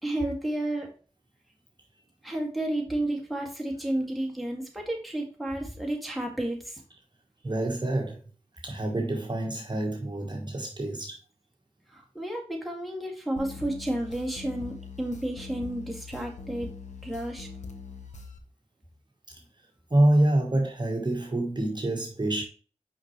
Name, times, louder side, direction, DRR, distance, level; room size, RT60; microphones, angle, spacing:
voice 1, 0.0-0.9 2.2-6.8 11.9-16.7 17.0-17.5, right 1 dB, ahead, 2.1 m, -31 dB
voice 2, 7.4-8.2 8.6-11.2 19.9-22.4, right 1 dB, 40° right, 1.2 m, -26 dB
sound 1, 13.4-18.4, left 4 dB, 75° left, 1.0 m, -42 dB
5.8 x 5.4 x 3.1 m
cardioid pair, 50°, 12 cm